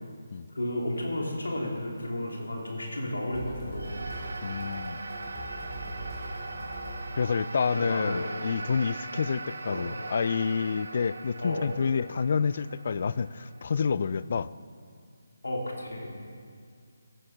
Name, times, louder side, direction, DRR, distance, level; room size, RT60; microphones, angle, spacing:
voice 1, 0.5-3.9 7.7-8.3 9.7-9.9 11.4-11.7 15.4-16.1, left 1 dB, 90° left, -1 dB, 2.7 m, -32 dB
sound 1, 3.3-7.5, right 1 dB, 20° left, 3.3 m, -41 dB
sound 2, 3.7-14.2, right 3 dB, 75° right, 1.3 m, -40 dB
voice 2, 4.4-5.0 7.2-14.5, left 5 dB, 45° left, 18 dB, 0.3 m, -28 dB
14.5 x 8.8 x 5.7 m, 2.2 s
figure-of-eight pair, 160°, 0 cm